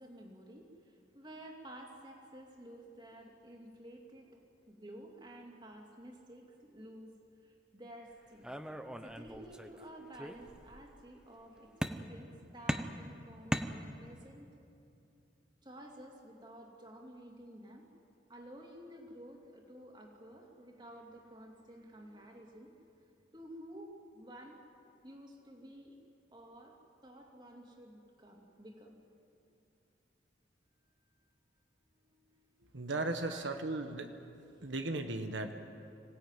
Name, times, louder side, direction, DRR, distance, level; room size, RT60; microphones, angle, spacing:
voice 1, 0.0-8.5 9.0-14.5 15.6-17.9 18.3-22.7 23.3-24.6 25.0-26.0 26.3-26.8 27.0-29.0 32.1-32.5 33.3-33.6 34.6-34.7, right 1 dB, 25° right, 1 dB, 2.9 m, -52 dB
sound 1, 8.4-9.8 10.1-10.9 11.8-12.3 12.7-14.3, equal, 5° right, 0.8 m, -38 dB
voice 2, 32.7-34.1 34.6-35.5, right 2 dB, 85° right, 6 dB, 1.2 m, -36 dB
26.0 x 17.0 x 9.2 m, 2.6 s
head